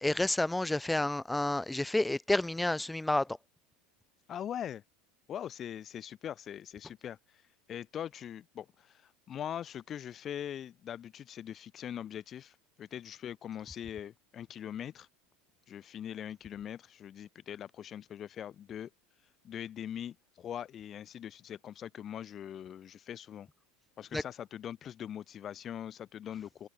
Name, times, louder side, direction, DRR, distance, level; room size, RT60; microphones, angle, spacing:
voice 1, 0.0-3.3 24.1-24.2, left 2 dB, 5° left, 0.4 m, -30 dB
voice 2, 4.3-4.8 5.3-7.2 7.7-15.1 15.7-18.9 19.4-23.5 24.0-26.7, left 10 dB, 35° left, 0.9 m, -42 dB
open air
supercardioid pair, 115°, 0 cm